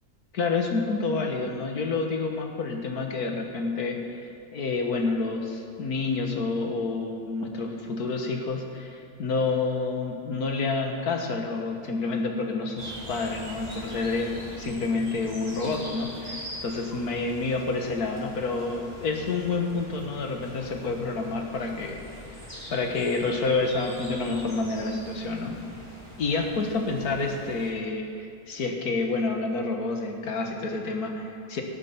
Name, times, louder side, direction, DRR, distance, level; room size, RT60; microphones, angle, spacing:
voice 1, 0.3-4.2 4.5-22.1 22.7-25.6 26.2-31.6, left 3 dB, 80° left, 2 dB, 1.9 m, -28 dB
sound 1, 12.8-27.7, equal, 25° right, 3.9 m, -42 dB
18.0 x 8.3 x 5.9 m, 2.4 s
omnidirectional pair, 1.6 m